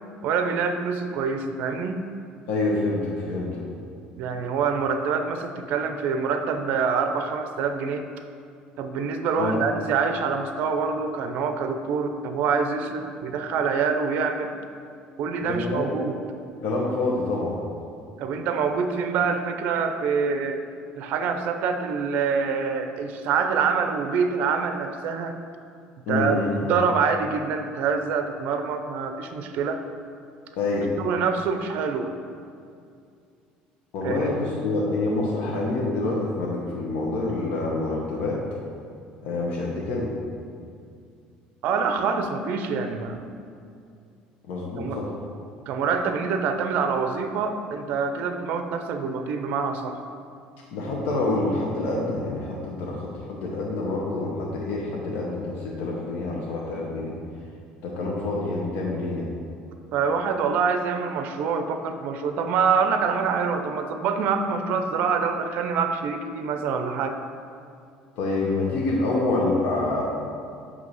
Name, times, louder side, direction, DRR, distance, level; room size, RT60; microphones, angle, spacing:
voice 1, 0.2-2.0 4.2-8.0 8.8-14.5 15.2-16.2 18.2-20.6 21.0-25.4 26.1-29.8 31.0-32.1 34.0-34.3 41.6-43.2 44.8-45.0 45.7-50.0 59.9-67.2, right 5 dB, 60° right, 7 dB, 0.5 m, -25 dB
voice 2, 2.5-3.6 9.4-9.6 15.4-15.9 16.6-17.6 26.1-26.6 30.6-30.9 33.9-38.4 39.2-40.1 44.5-45.1 50.7-57.1 57.8-59.3 68.2-70.0, left 2 dB, 65° left, -3 dB, 0.9 m, -27 dB
8.0 x 2.8 x 5.5 m, 2.4 s
cardioid pair, 145°, 3 cm